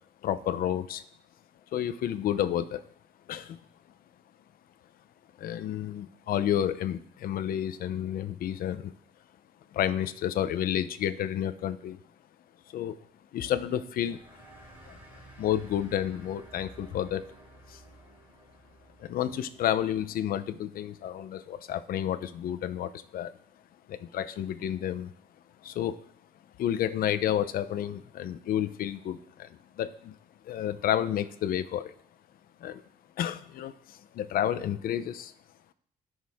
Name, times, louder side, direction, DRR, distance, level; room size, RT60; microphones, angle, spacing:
voice 1, 0.2-1.0 1.7-2.8 3.3-3.6 5.4-8.9 9.7-12.0 12.7-12.9 13.3-14.2 14.9-15.0 15.4-17.2 17.7-17.8 19.0-23.3 23.9-25.1 25.6-26.0 26.6-30.2 30.4-32.0 32.6-32.8 33.2-35.3, left 10 dB, 80° left, 13 dB, 0.7 m, -30 dB
sound 1, 14.0-21.1, right 2 dB, 15° right, 4.2 m, -53 dB
19.0 x 6.5 x 3.6 m, 0.65 s
cardioid pair, 85°, 15 cm